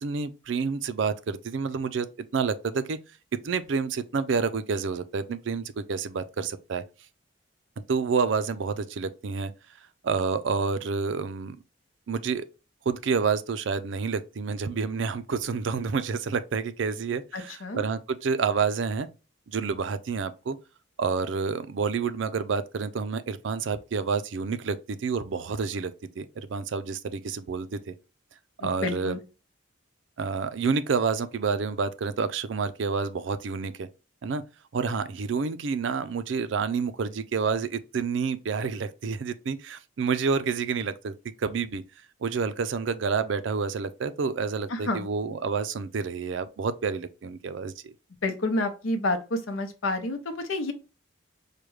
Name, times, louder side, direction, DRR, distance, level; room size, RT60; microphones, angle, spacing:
voice 1, 0.0-3.0 3.4-6.8 7.9-9.5 10.0-11.6 12.1-12.5 12.9-19.1 19.5-20.6 21.0-27.9 28.6-29.2 30.2-33.9 34.2-34.4 34.7-41.8 42.2-47.9, right 5 dB, 70° right, 0.4 m, -29 dB
voice 2, 17.3-17.8 28.6-29.2 44.7-45.1 48.2-50.7, left 2 dB, 85° left, 0.7 m, -29 dB
4.9 x 2.2 x 3.1 m
head